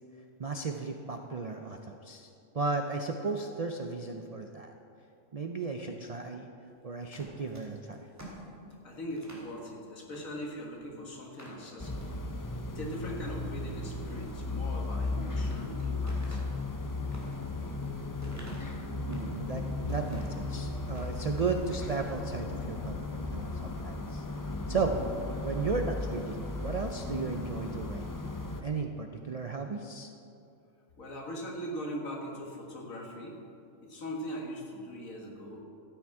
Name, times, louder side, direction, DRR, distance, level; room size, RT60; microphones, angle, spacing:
voice 1, 0.4-2.3 2.5-4.7 5.3-6.5 6.8-8.1 19.1-19.6 19.9-23.0 23.3-24.3 24.7-25.0 25.4-28.1 28.6-30.1, right 4 dB, 55° right, 4 dB, 0.4 m, -34 dB
sound 1, 7.0-9.5 10.1-10.3 10.6-10.7 11.2-12.1 12.6-13.1 14.9-15.6 16.0-19.4 19.9-20.4 20.8-21.6 21.8-22.1, right 1 dB, 10° right, 2.1 m, -49 dB
voice 2, 8.8-12.2 12.7-16.4 31.0-33.4 33.8-35.6, equal, 75° left, 0 dB, 2.1 m, -40 dB
sound 2, 11.8-28.6, left 3 dB, 30° left, 0.3 m, -36 dB
13.5 x 8.8 x 4.8 m, 2.7 s
omnidirectional pair, 1.4 m